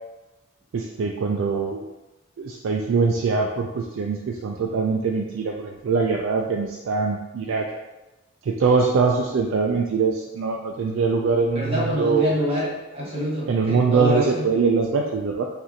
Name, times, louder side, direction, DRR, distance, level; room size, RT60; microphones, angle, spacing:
voice 1, 0.7-1.8 2.4-7.7 8.5-12.3 13.5-15.5, right 4 dB, 70° right, 1 dB, 0.3 m, -23 dB
voice 2, 11.5-14.5, equal, 30° right, -6 dB, 1.3 m, -26 dB
5.0 x 2.6 x 2.8 m, 1.0 s
head